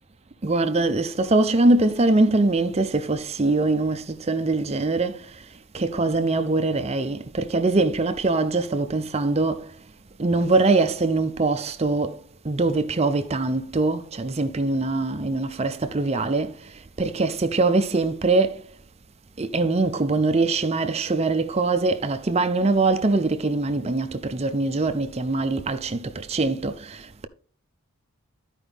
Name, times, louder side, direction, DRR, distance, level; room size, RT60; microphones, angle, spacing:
voice 1, 0.4-5.4 5.7-9.7 10.2-12.2 12.4-18.6 19.4-27.3, right 3 dB, 30° right, 0.5 m, -23 dB
13.0 x 5.0 x 3.4 m
head